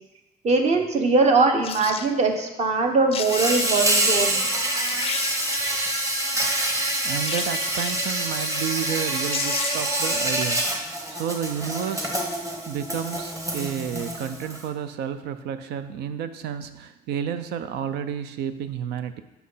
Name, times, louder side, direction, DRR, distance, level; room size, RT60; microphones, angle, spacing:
voice 1, 0.4-4.4, right 3 dB, 40° right, 4 dB, 1.2 m, -21 dB
sound 1, 1.6-2.1 2.8-2.9 3.1-3.9 4.5-4.6 4.9-5.9 7.2-8.1 9.0-9.1 9.3-10.0 10.3-10.4, left 8 dB, 35° left, 0.4 m, -33 dB
Insect, 3.2-14.6, right 1 dB, 20° right, 1.2 m, -26 dB
voice 2, 6.8-12.2 12.7-19.2, right 8 dB, 80° right, 11 dB, 0.6 m, -31 dB
6.2 x 5.7 x 5.6 m, 0.99 s
cardioid pair, 110°, 17 cm